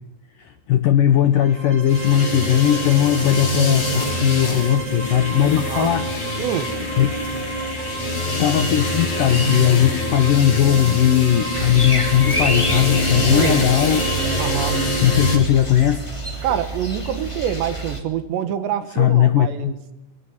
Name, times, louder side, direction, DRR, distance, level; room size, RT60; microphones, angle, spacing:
voice 1, 0.4-6.1 6.4-6.5 7.0-7.1 8.4-14.1 15.0-16.1 18.9-19.7, left 11 dB, 75° left, 10 dB, 2.0 m, -18 dB
sound 1, 1.3-15.4, right 4 dB, 40° right, 1.7 m, -31 dB
sound 2, 1.9-15.4, left 1 dB, 40° left, 6.4 m, -25 dB
voice 2, 6.4-6.7 13.3-13.6 14.4-14.8 16.4-19.8, right 9 dB, 75° right, 11 dB, 3.7 m, -26 dB
sound 3, 11.5-18.0, right 1 dB, 10° left, 2.3 m, -28 dB
23.5 x 18.5 x 9.8 m, 0.84 s
omnidirectional pair, 5.2 m